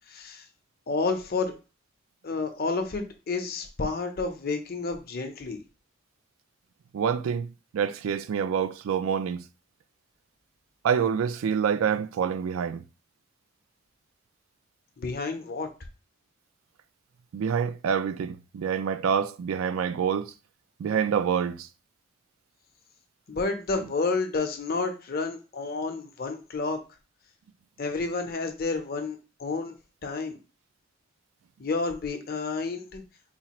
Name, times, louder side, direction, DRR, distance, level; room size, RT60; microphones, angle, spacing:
voice 1, 0.1-0.5 0.9-1.5 2.2-5.6 15.0-15.7 23.3-26.8 27.8-29.7 30.0-30.4 31.6-33.0, left 3 dB, 50° left, 0.7 m, -30 dB
voice 2, 6.9-7.5 7.7-9.4 10.8-12.8 17.3-20.3 20.8-21.7, right 7 dB, 80° right, 0.3 m, -27 dB
4.2 x 2.4 x 2.9 m
head